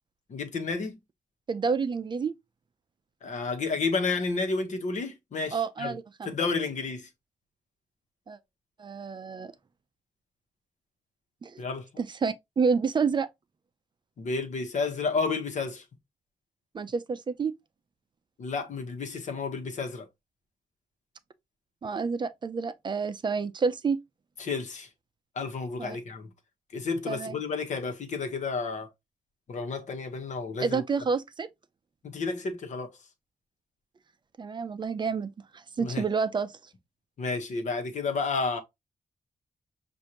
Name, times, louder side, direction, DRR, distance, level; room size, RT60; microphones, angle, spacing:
voice 1, 0.3-1.0 3.2-5.9 6.2-7.1 11.6-11.9 14.2-15.8 18.4-20.1 24.4-24.9 25.4-26.3 26.7-28.9 29.5-30.8 32.0-33.0 35.8-36.0 37.2-38.6, left 4 dB, 65° left, 1.1 m, -31 dB
voice 2, 1.5-2.3 5.5-6.3 8.3-8.4 8.8-9.5 11.4-11.6 12.0-13.3 16.7-17.5 21.8-24.0 25.8-26.0 27.1-27.3 30.6-31.5 34.4-36.5, right 5 dB, 35° right, 0.4 m, -29 dB
6.4 x 2.6 x 2.9 m
wide cardioid pair, 135°, 13 cm